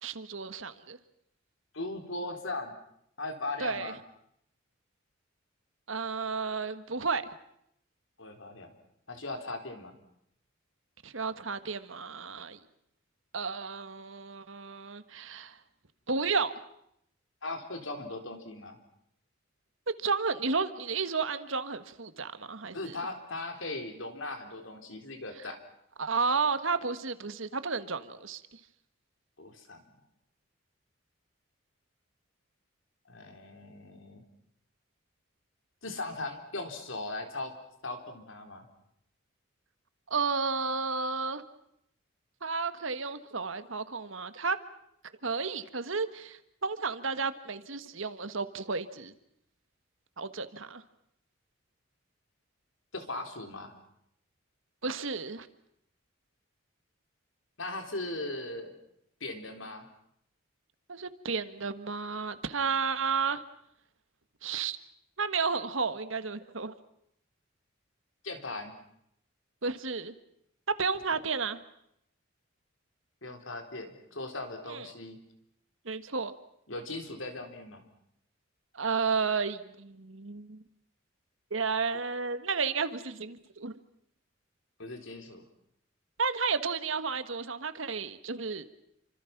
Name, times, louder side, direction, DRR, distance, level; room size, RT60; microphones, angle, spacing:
voice 1, 0.0-1.0 3.6-3.9 5.9-7.3 11.0-12.6 13.3-15.6 16.1-16.5 20.0-23.0 26.0-28.6 40.1-41.4 42.4-44.6 45.2-49.1 50.2-50.8 54.8-55.5 60.9-63.4 64.4-64.8 65.2-66.7 69.6-70.1 70.8-71.6 74.7-74.9 75.8-76.3 78.7-80.6 81.5-83.8 86.2-88.6, right 4 dB, 75° right, 11 dB, 1.6 m, -32 dB
voice 2, 1.7-2.7 3.2-4.0 8.2-8.7 9.1-9.9 17.4-18.8 22.7-25.6 29.4-29.8 33.1-34.2 35.8-37.5 37.8-38.7 52.9-53.7 57.6-58.7 59.2-59.9 68.2-68.8 71.1-71.2 73.2-75.2 76.7-77.8 84.8-85.4, left 2 dB, 70° left, 5 dB, 4.1 m, -38 dB
29.0 x 25.5 x 6.0 m, 0.75 s
head